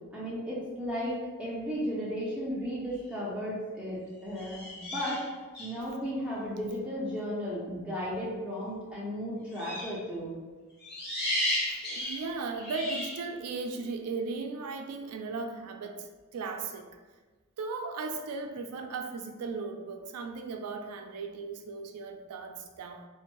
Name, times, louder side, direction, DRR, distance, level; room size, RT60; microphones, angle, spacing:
voice 1, 0.1-5.2 5.6-10.4, equal, 5° right, -8 dB, 0.4 m, -34 dB
sound 1, 2.9-3.2 4.3-5.8 9.5-10.0 10.8-13.3, left 1 dB, 50° left, 0.7 m, -34 dB
voice 2, 11.7-16.9 17.6-23.1, right 4 dB, 85° right, 5 dB, 0.4 m, -37 dB
2.5 x 2.1 x 2.9 m, 1.3 s
head